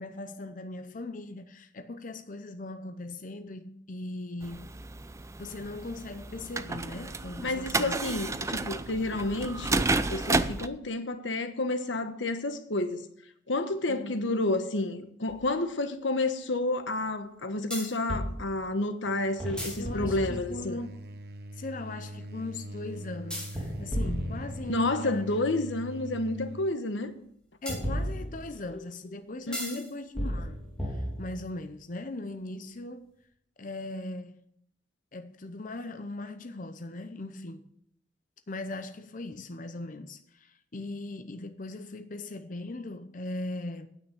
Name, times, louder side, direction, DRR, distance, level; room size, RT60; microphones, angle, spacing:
voice 1, 0.0-4.7 5.4-8.0 13.9-14.1 19.8-21.0 21.5-25.2 27.6-33.1 33.6-34.4 35.1-37.7 38.5-43.9, left 2 dB, 45° left, 0.7 m, -39 dB
sound 1, 4.4-10.7, right 3 dB, 15° right, 0.4 m, -31 dB
voice 2, 7.4-13.1 13.5-20.8 24.7-27.1 29.5-29.8, left 2 dB, 90° left, 1.2 m, -30 dB
sound 2, 15.3-15.4 17.7-18.3 19.4-20.7 23.3-25.0 27.7-28.7 29.5-29.8 30.2-31.5, equal, 5° left, 3.2 m, -34 dB
sound 3, 19.0-26.8, right 1 dB, 55° right, 0.9 m, -43 dB
9.6 x 8.6 x 7.2 m
head